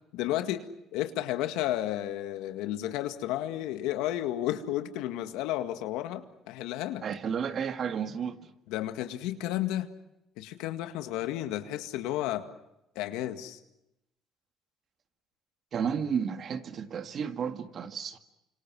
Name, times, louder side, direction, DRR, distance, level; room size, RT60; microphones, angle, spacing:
voice 1, 0.1-0.6 0.9-7.0 8.7-9.9 10.4-12.5 13.0-13.6, left 13 dB, 85° left, 2.0 m, -32 dB
voice 2, 7.0-8.5 15.7-18.2, right 7 dB, 50° right, 1.9 m, -32 dB
29.5 x 26.5 x 6.2 m
supercardioid pair, 90°, 0 cm